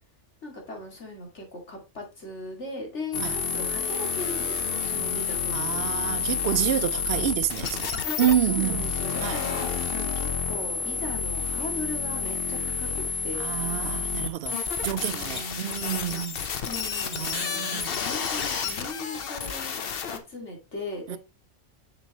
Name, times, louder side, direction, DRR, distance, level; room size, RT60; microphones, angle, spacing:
voice 1, 0.4-5.8 7.9-8.0 8.4-13.5 14.8-15.7 16.1-16.2 16.6-19.8 20.1-21.2, left 2 dB, 70° left, 2.7 m, -39 dB
sound 1, 3.1-20.2, left 6 dB, 55° left, 1.0 m, -30 dB
voice 2, 5.5-8.9 9.2-9.4 13.4-14.6 14.8-16.4 17.1-17.9 21.1-21.2, right 11 dB, 65° right, 0.7 m, -28 dB
6.9 x 6.9 x 2.9 m
omnidirectional pair, 1.2 m